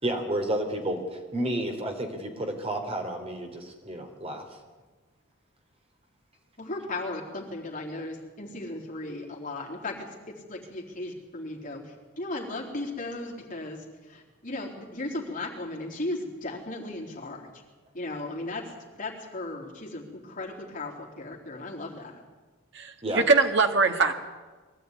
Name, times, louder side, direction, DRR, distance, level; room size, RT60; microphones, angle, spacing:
voice 1, 0.0-4.4 23.0-23.2, right 1 dB, 30° right, 3 dB, 3.4 m, -31 dB
voice 2, 6.6-17.5 17.9-18.7 19.0-22.2, left 2 dB, 40° left, -1 dB, 4.0 m, -36 dB
voice 3, 22.7-24.1, right 4 dB, 55° right, 5 dB, 1.8 m, -22 dB
22.5 x 14.0 x 9.7 m, 1.3 s
head